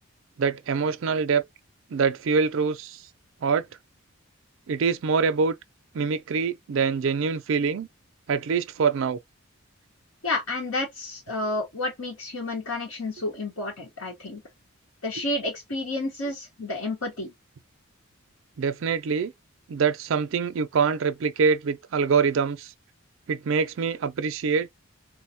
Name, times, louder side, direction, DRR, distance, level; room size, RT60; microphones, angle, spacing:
voice 1, 0.4-1.4 1.9-3.0 3.4-3.6 4.7-5.6 5.9-7.9 8.3-9.2 18.6-19.3 19.7-22.7 23.3-24.7, right 5 dB, 65° right, 0.4 m, -24 dB
voice 2, 10.2-14.4 15.0-17.3, left 2 dB, 80° left, 1.1 m, -30 dB
3.8 x 2.1 x 2.7 m
head